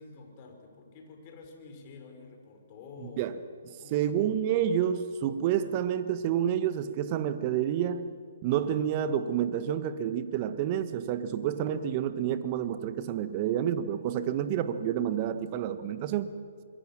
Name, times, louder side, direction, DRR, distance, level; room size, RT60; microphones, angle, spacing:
voice 1, 0.0-3.2 3.7-4.2, left 4 dB, 35° left, 3 dB, 5.3 m, -49 dB
voice 2, 3.9-8.1 8.4-16.4, right 9 dB, 35° right, 11 dB, 1.5 m, -29 dB
26.5 x 22.0 x 7.4 m, 2.1 s
figure-of-eight pair, 130°, 0 cm